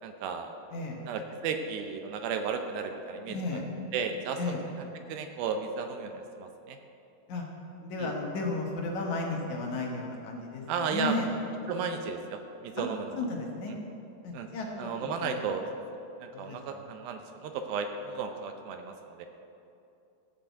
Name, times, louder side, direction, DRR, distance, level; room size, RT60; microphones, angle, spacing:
voice 1, 0.0-0.5 1.1-3.6 3.9-4.4 4.8-6.8 8.0-8.1 10.7-11.2 11.7-13.2 13.7-13.8 14.3-14.5 14.8-15.6 16.2-19.3, right 6 dB, 80° right, 6 dB, 2.3 m, -34 dB
voice 2, 0.7-1.0 3.3-3.6 4.4-4.6 7.3-7.4 7.8-11.3 12.8-12.9 13.2-13.7 14.2-14.9 15.2-15.5 16.3-16.9, left 3 dB, 65° left, 0 dB, 2.1 m, -34 dB
14.0 x 6.0 x 8.0 m, 2.8 s
omnidirectional pair, 4.6 m